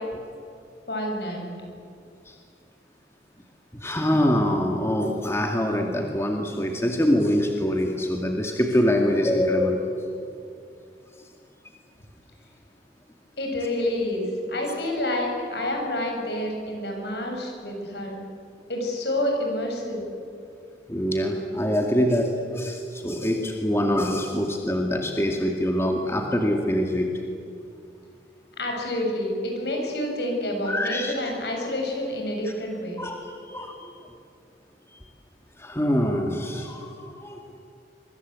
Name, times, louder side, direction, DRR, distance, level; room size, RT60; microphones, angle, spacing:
voice 1, 0.9-1.5 13.4-18.2 18.7-20.1 28.6-33.0, left 1 dB, 70° left, 1 dB, 7.6 m, -28 dB
voice 2, 3.7-9.9 20.9-27.1 30.6-31.1 33.0-33.9 35.6-37.4, equal, 15° left, 2 dB, 2.2 m, -24 dB
26.0 x 24.0 x 8.3 m, 2.4 s
head